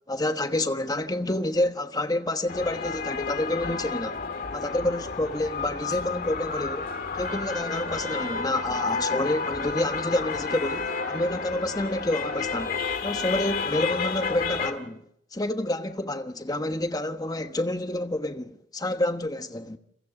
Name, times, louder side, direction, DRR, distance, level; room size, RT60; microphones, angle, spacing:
voice 1, 0.1-4.2 4.5-15.0 15.3-19.8, left 1 dB, 20° left, 1.2 m, -28 dB
Downtown traffic and crowd noises, 2.5-14.7, left 4 dB, 50° left, 2.0 m, -31 dB
30.0 x 23.0 x 3.9 m
head